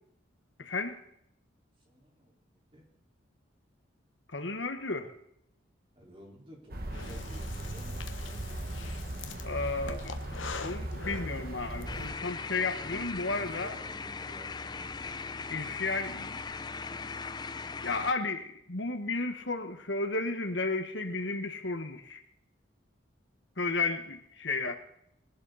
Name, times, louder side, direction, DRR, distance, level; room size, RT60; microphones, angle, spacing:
voice 1, 0.6-1.0 4.3-5.1 9.4-13.8 15.5-16.4 17.8-22.2 23.6-24.7, left 3 dB, 75° left, 7 dB, 1.5 m, -33 dB
voice 2, 1.8-2.8 5.9-8.2 12.8-14.9, equal, 30° right, -2 dB, 4.6 m, -52 dB
sound 1, 6.7-12.1, right 1 dB, 50° right, 1.6 m, -38 dB
Breathing, 6.9-11.9, left 5 dB, 90° left, 1.3 m, -44 dB
sound 2, 11.9-18.1, left 4 dB, 20° left, 0.5 m, -39 dB
21.0 x 12.0 x 4.2 m, 0.73 s
head